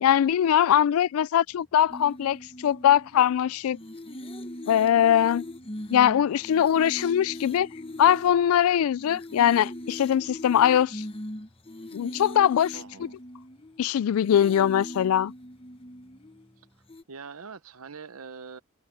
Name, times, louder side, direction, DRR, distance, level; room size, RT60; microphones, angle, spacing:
voice 1, 0.0-3.8 4.7-5.4 5.9-7.7 8.0-11.0 11.9-12.7 13.8-15.3, left 9 dB, 80° left, 0.3 m, -21 dB
sound 1, 1.5-17.0, equal, 10° left, 7.1 m, -65 dB
sound 2, 1.9-3.4 3.7-8.6 9.0-13.8 14.2-16.5 16.9-17.0, left 1 dB, 25° left, 1.1 m, -40 dB
voice 2, 12.7-13.2 16.6-16.7 17.1-18.6, right 5 dB, 85° right, 0.9 m, -43 dB
head